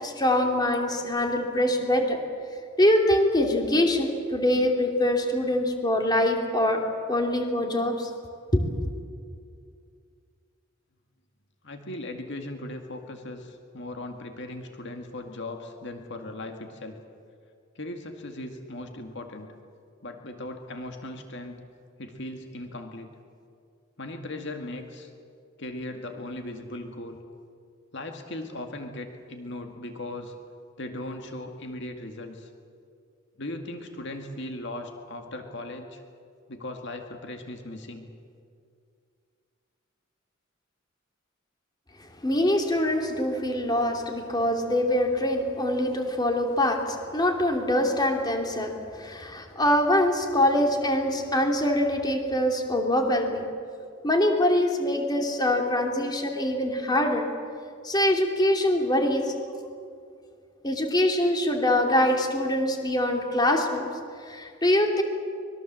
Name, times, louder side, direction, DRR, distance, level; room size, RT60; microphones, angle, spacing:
voice 1, 0.0-2.2 2.8-6.8 7.1-8.1 8.5-8.7 42.0-53.5 54.0-57.3 57.8-59.3 60.6-63.9 64.2-65.0, left 1 dB, 20° left, 3 dB, 2.8 m, -24 dB
voice 2, 11.6-17.0 17.8-19.5 20.0-21.6 22.0-23.1 24.0-25.1 25.6-27.2 27.9-30.3 30.8-32.5 33.4-36.0 36.5-38.1, left 1 dB, 65° left, 4 dB, 2.1 m, -38 dB
25.0 x 21.5 x 7.7 m, 2.3 s
head